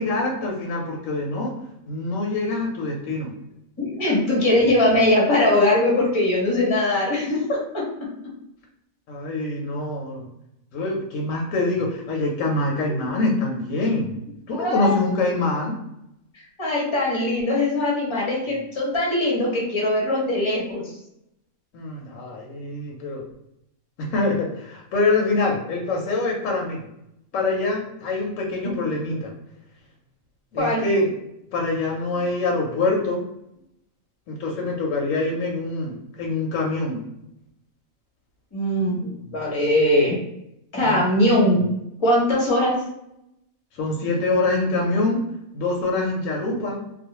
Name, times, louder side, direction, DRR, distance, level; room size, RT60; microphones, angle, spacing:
voice 1, 0.0-1.5 1.9-3.3 9.1-10.3 10.7-14.2 14.5-15.7 21.7-23.2 24.0-26.9 27.3-29.3 30.5-31.1 31.5-33.2 34.3-37.0 40.8-41.0 43.8-45.2 45.5-46.8, left 2 dB, 70° left, -1 dB, 0.9 m, -25 dB
voice 2, 3.8-7.8 13.2-13.3 14.6-15.3 16.6-20.9 28.6-28.7 30.6-30.8 38.5-40.2 40.7-41.6 42.0-42.8, left 1 dB, 30° left, -4 dB, 0.6 m, -21 dB
2.4 x 2.1 x 2.8 m, 0.81 s
omnidirectional pair, 1.5 m